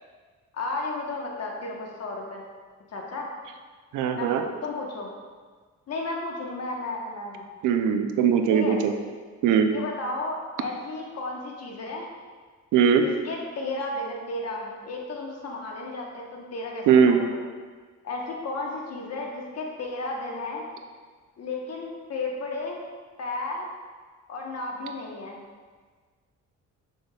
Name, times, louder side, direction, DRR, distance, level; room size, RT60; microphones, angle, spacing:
voice 1, 0.5-2.4 2.9-3.3 4.1-5.1 5.9-7.5 8.5-8.8 9.7-12.1 12.9-17.4 18.0-20.6 21.4-22.8 23.2-23.7 24.3-25.4, left 2 dB, 55° left, -1 dB, 1.2 m, -33 dB
voice 2, 3.9-4.4 7.6-8.9 9.4-9.7 12.7-13.0 16.9-17.2, right 7 dB, 90° right, 6 dB, 0.6 m, -20 dB
6.6 x 6.1 x 2.4 m, 1.5 s
cardioid pair, 90°, 30 cm